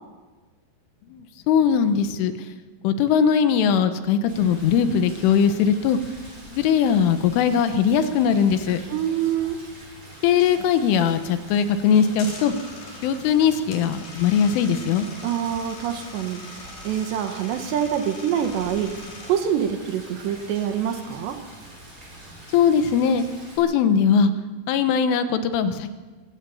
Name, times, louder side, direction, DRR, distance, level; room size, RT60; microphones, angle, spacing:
voice 1, 1.1-2.5 2.8-6.0 6.5-8.8 10.2-12.6 13.0-15.1 22.5-23.2 23.6-24.3 24.7-25.9, left 7 dB, 80° left, 9 dB, 3.5 m, -20 dB
Rain, 4.3-23.6, right 1 dB, 15° right, 7.8 m, -45 dB
voice 2, 8.9-9.6 15.2-21.4, right 9 dB, 70° right, 6 dB, 3.3 m, -26 dB
sound 1, 11.9-19.3, left 2 dB, 50° left, 5.7 m, -42 dB
23.5 x 17.0 x 7.2 m, 1.3 s
omnidirectional pair, 5.8 m